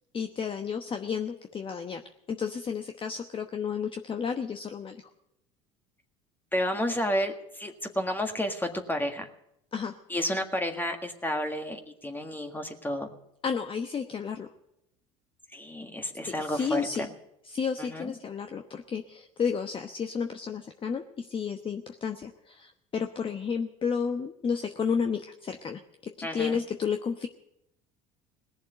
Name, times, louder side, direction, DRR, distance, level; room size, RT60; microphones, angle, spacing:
voice 1, 0.1-2.0 2.3-5.0 9.7-9.9 13.4-14.5 16.4-17.1 17.4-27.3, left 6 dB, 30° left, 7 dB, 1.1 m, -32 dB
voice 2, 6.5-9.3 10.1-13.1 15.5-17.1 17.8-18.2 26.2-26.6, equal, 10° left, 5 dB, 1.7 m, -31 dB
18.0 x 7.2 x 9.2 m, 0.81 s
hypercardioid pair, 70°, 17 cm